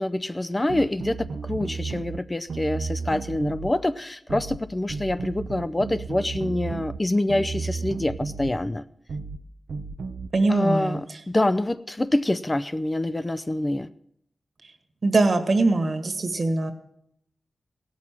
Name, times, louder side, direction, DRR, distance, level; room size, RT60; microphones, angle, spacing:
voice 1, 0.0-8.8 10.5-13.9, left 1 dB, 25° left, 13 dB, 0.4 m, -26 dB
sound 1, 0.7-2.2 2.5-3.7 4.3-4.6 4.9-7.0 7.3-8.5 9.1-9.4 9.7-10.3, right 4 dB, 85° right, 0.7 m, -33 dB
voice 2, 10.3-11.0 15.0-16.7, right 2 dB, 55° right, 8 dB, 1.5 m, -22 dB
16.0 x 6.4 x 7.4 m, 0.73 s
cardioid pair, 65°, 0 cm